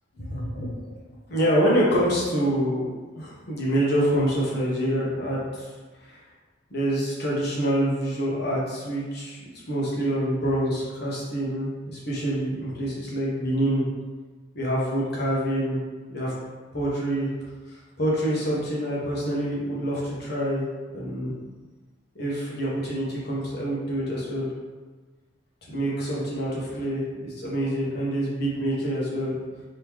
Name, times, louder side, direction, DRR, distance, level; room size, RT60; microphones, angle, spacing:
voice 1, 0.2-0.7 1.3-2.9 3.2-5.7 6.0-6.2 6.7-9.4 9.7-13.8 14.5-15.8 16.1-16.3 16.7-17.3 17.7-20.7 20.9-21.3 22.1-24.5 25.7-29.4, equal, 60° left, -5 dB, 1.1 m, -26 dB
3.6 x 3.1 x 3.0 m, 1.3 s
head